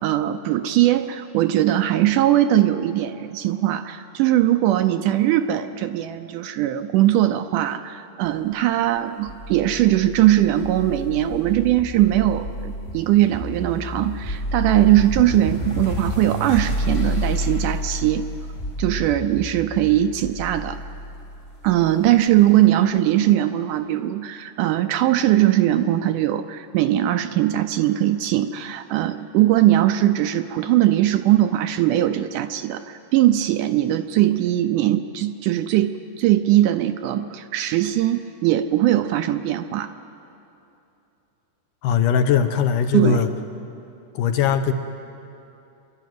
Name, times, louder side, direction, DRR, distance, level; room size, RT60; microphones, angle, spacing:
voice 1, 0.0-18.3 18.8-20.8 21.6-39.9 42.9-43.2, right 13 dB, 80° right, 9 dB, 2.0 m, -20 dB
sound 1, 9.3-22.4, equal, 40° left, 1.0 m, -30 dB
voice 2, 41.8-43.3 44.2-44.7, left 8 dB, 75° left, 8 dB, 2.4 m, -20 dB
26.5 x 12.0 x 9.3 m, 2.8 s
omnidirectional pair, 4.0 m